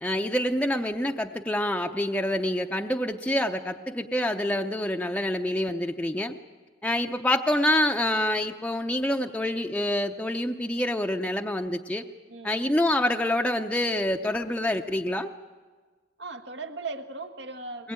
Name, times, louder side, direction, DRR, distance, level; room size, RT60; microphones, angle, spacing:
voice 1, 0.0-6.3 6.8-12.1 12.4-15.3 17.8-17.9, left 1 dB, 5° left, 3 dB, 0.7 m, -26 dB
voice 2, 16.2-17.9, right 3 dB, 70° right, 6 dB, 1.5 m, -38 dB
22.0 x 20.5 x 8.8 m, 1.4 s
head